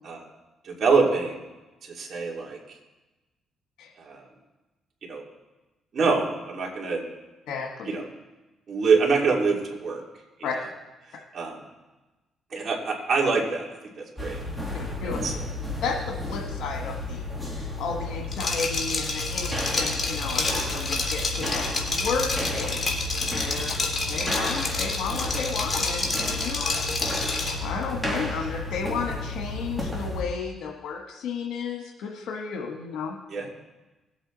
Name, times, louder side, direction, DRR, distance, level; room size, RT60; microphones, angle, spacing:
voice 1, 0.6-1.5 1.8-2.8 4.0-4.3 5.0-5.2 5.9-7.0 7.8-8.1 8.7-10.0 10.4-10.5 11.3-11.6 12.5-14.4 15.0-15.4 23.6-23.9 33.3-33.5, right 4 dB, 50° right, -2 dB, 3.0 m, -25 dB
voice 2, 7.5-7.9 10.4-10.5 15.0-15.2 15.8-23.7 24.1-26.8 27.2-33.2, left 5 dB, 80° left, 0 dB, 1.4 m, -33 dB
sound 1, 14.2-30.2, left 2 dB, 5° right, 2.8 m, -32 dB
Liquid, 18.3-27.7, left 3 dB, 35° left, 2.6 m, -29 dB
19.5 x 8.0 x 4.0 m, 1.1 s
cardioid pair, 90°, 0 cm